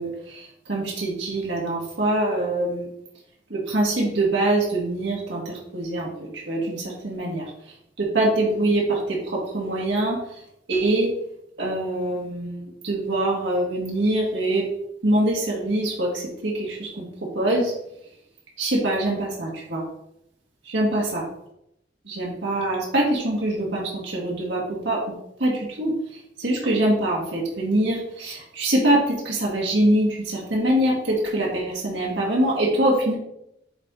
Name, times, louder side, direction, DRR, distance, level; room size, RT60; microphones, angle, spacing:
voice 1, 0.0-2.9 3.5-7.5 8.0-10.2 10.7-11.1 11.6-14.7 15.0-17.1 17.4-17.7 18.6-19.8 20.6-21.2 22.1-25.0 25.4-25.9 26.4-33.2, right 1 dB, 75° right, -4 dB, 1.7 m, -24 dB
8.0 x 4.2 x 3.8 m, 0.78 s
head